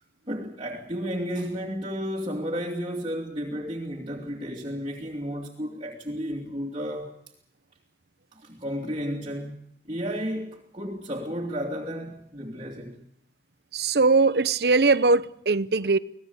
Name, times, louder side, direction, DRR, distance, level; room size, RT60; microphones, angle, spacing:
voice 1, 0.3-7.2 8.3-9.6 9.8-13.0, equal, 30° right, 2.7 m, -32 dB
voice 2, 13.7-16.0, right 3 dB, 65° right, 0.9 m, -21 dB
26.0 x 18.0 x 8.1 m
head